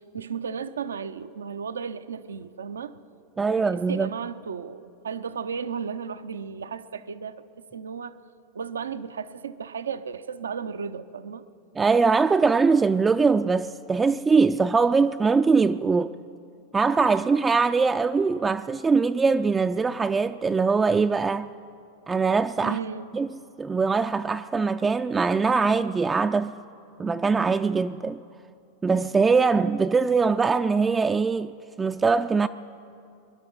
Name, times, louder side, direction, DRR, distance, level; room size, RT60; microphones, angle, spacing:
voice 1, 0.0-3.0 3.5-7.4 7.7-8.2 8.5-11.4 22.6-23.1, right 6 dB, 85° right, 0.6 m, -34 dB
voice 2, 3.4-4.1 11.8-16.1 16.7-21.5 22.1-22.8 23.1-23.3 23.6-26.6 27.0-28.2 28.8-32.5, right 4 dB, 15° right, 0.3 m, -22 dB
22.5 x 11.5 x 5.5 m
hypercardioid pair, 100°, 0 cm